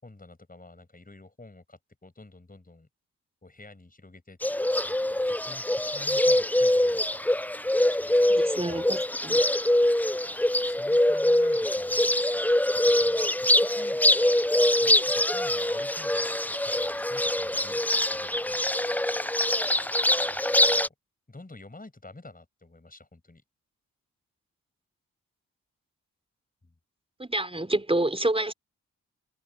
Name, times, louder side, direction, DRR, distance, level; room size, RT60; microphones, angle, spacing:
voice 1, 0.0-2.9 3.4-4.4 4.8-7.3 7.9-8.2 10.2-12.6 12.9-14.0 14.8-17.8 18.1-18.7 20.3-20.9 21.3-23.4 26.6-26.7, left 2 dB, 25° left, 7.0 m, -50 dB
Bird, 4.4-20.9, left 1 dB, 5° left, 0.7 m, -24 dB
voice 2, 8.3-9.4 27.2-28.5, right 1 dB, 15° right, 4.4 m, -28 dB
supercardioid pair, 40°, 33 cm